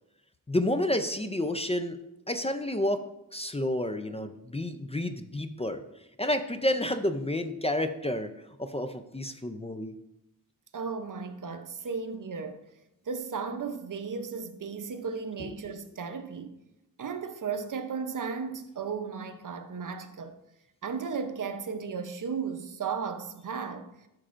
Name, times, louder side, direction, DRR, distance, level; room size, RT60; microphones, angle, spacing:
voice 1, 0.5-2.0 2.3-3.0 3.3-5.8 6.2-8.3 8.6-9.9, left 1 dB, 20° left, 0.4 m, -30 dB
voice 2, 10.7-12.6 13.1-16.6 17.0-20.4 20.8-23.9, right 5 dB, 65° right, 0.7 m, -35 dB
11.0 x 6.2 x 2.5 m
wide cardioid pair, 100°, 34 cm